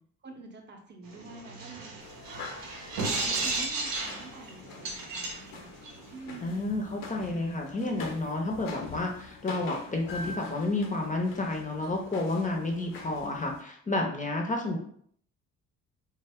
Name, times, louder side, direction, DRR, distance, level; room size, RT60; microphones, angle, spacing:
voice 1, 0.2-1.9 2.3-2.4 2.9-5.7 6.1-6.6, right 3 dB, 30° right, 2 dB, 0.7 m, -47 dB
sound 1, 1.1-6.4, right 3 dB, 65° right, 0.7 m, -34 dB
sound 2, 2.0-13.6, left 4 dB, 60° left, 0.6 m, -45 dB
voice 2, 6.4-14.8, left 2 dB, 20° left, 1 dB, 0.6 m, -30 dB
2.2 x 2.0 x 3.4 m, 0.62 s
hypercardioid pair, 55°, 37 cm